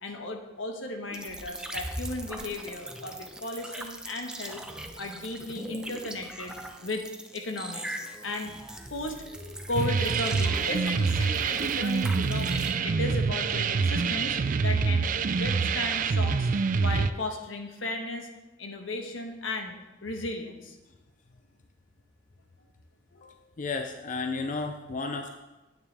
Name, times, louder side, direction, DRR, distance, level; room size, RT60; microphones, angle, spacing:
voice 1, 0.0-4.6 5.0-6.5 6.8-7.0 7.3-8.5 8.9-9.2 9.7-16.5 16.8-18.3 18.6-19.7 20.0-20.7, left 2 dB, 80° left, 4 dB, 1.3 m, -35 dB
sound 1, 1.1-12.7, right 1 dB, 5° right, 0.7 m, -40 dB
sound 2, 9.7-17.1, right 5 dB, 40° right, 0.3 m, -26 dB
voice 2, 23.1-25.3, left 3 dB, 40° left, 4 dB, 0.5 m, -33 dB
9.7 x 9.0 x 3.4 m, 1.1 s
head